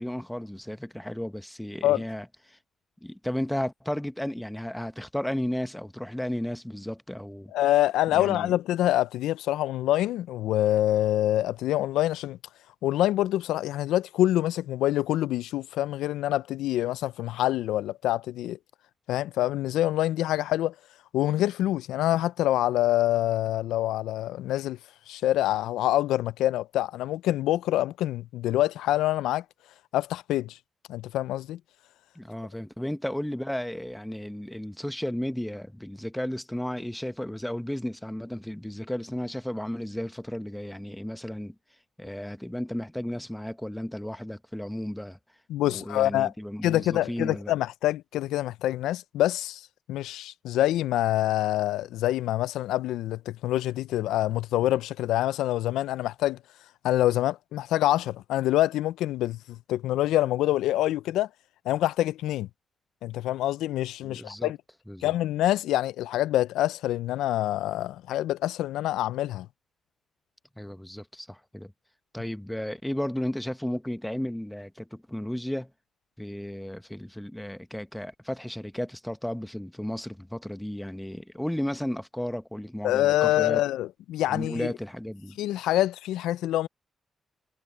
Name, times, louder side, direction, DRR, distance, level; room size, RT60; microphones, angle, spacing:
voice 1, 0.0-2.6 3.0-7.5 8.1-8.5 32.1-41.5 42.0-45.2 45.6-47.5 64.0-64.5 64.9-65.1 70.6-71.7 72.1-75.7 76.2-83.6 84.3-85.4, left 1 dB, 5° left, 1.3 m, -34 dB
voice 2, 7.5-12.4 12.8-18.6 19.1-20.7 21.1-24.8 25.1-29.4 29.9-30.6 30.9-31.6 45.5-46.3 46.6-56.4 56.8-61.3 61.7-62.5 63.0-64.6 65.0-69.5 82.8-84.7 85.4-86.7, left 14 dB, 85° left, 0.4 m, -26 dB
supercardioid pair, 45°, 0 cm